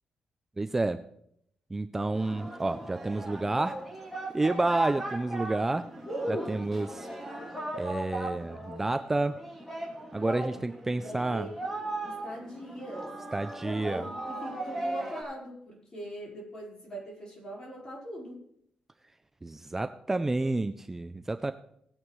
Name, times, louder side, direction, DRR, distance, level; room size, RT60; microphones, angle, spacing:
voice 1, 0.6-1.0 1.7-3.8 4.3-5.9 6.3-7.1 7.8-9.4 10.1-11.5 13.3-14.1 19.4-21.5, right 2 dB, 15° right, 9 dB, 0.4 m, -30 dB
Singing, 2.1-15.2, right 1 dB, 5° left, 2.9 m, -38 dB
voice 2, 6.0-6.5 10.1-10.6 10.9-11.5 12.0-13.2 13.6-18.4, right 1 dB, 30° left, -4 dB, 4.5 m, -40 dB
18.0 x 9.0 x 3.2 m, 0.73 s
wide cardioid pair, 155°, 2 cm